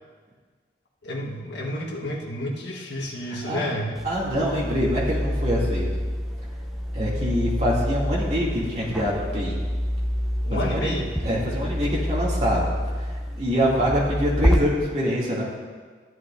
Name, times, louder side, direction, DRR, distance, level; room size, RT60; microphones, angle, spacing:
voice 1, 1.0-4.0 10.4-11.0, equal, 80° left, -1 dB, 1.4 m, -30 dB
voice 2, 3.3-3.6 4.0-6.0 6.9-9.6 10.5-15.4, equal, 40° right, -6 dB, 2.6 m, -25 dB
sound 1, 4.0-14.6, equal, ahead, 0.7 m, -27 dB
13.5 x 10.5 x 2.6 m, 1.5 s
head